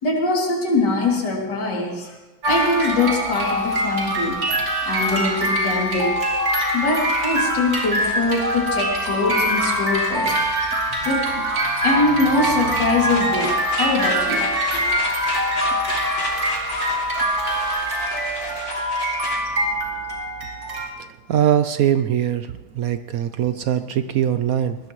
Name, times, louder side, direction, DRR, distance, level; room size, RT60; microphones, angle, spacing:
voice 1, 0.0-2.1 2.5-4.4 4.8-6.1 6.7-10.4 11.0-11.4 11.8-14.9, left 3 dB, 60° left, -2 dB, 3.5 m, -23 dB
sound 1, 2.4-20.9, right 1 dB, 50° right, 3.4 m, -23 dB
sound 2, 12.1-20.2, left 2 dB, 85° left, 3.8 m, -33 dB
voice 2, 21.3-24.8, right 10 dB, 75° right, 11 dB, 0.8 m, -21 dB
20.5 x 18.5 x 3.1 m, 1.1 s
omnidirectional pair, 2.1 m